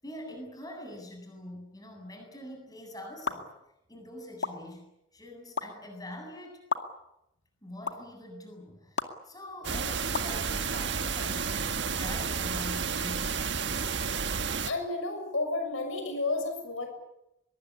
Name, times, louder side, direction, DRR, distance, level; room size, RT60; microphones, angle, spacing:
voice 1, 0.0-3.5 3.9-6.6 7.6-14.2, left 1 dB, 20° left, 3 dB, 8.0 m, -44 dB
sound 1, 3.3-3.4 4.4-4.5 5.6-5.7 6.7-6.8 7.8-7.9 9.0-9.1 10.1-10.3, left 4 dB, 65° left, 2.3 m, -29 dB
sound 2, 9.6-14.7, right 5 dB, 60° right, 1.5 m, -31 dB
voice 2, 14.6-16.9, left 2 dB, 90° left, 6 dB, 6.6 m, -31 dB
23.0 x 23.0 x 9.9 m, 0.85 s
head